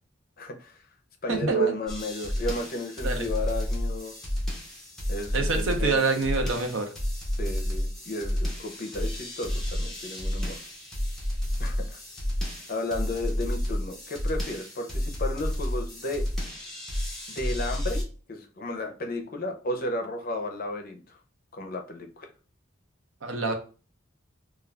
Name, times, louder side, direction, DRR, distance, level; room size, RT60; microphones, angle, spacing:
voice 1, 0.4-0.7 1.2-4.1 5.1-6.3 7.4-10.6 11.6-12.0 12.7-16.2 17.3-18.0 18.3-21.2 21.5-22.3, left 2 dB, 45° left, 4 dB, 0.5 m, -33 dB
voice 2, 1.3-1.7 3.0-3.3 5.3-6.9 23.2-23.5, right 4 dB, 70° right, 5 dB, 0.6 m, -26 dB
sound 1, 1.9-18.0, equal, ahead, 0.7 m, -31 dB
2.4 x 2.3 x 3.2 m, 0.36 s
head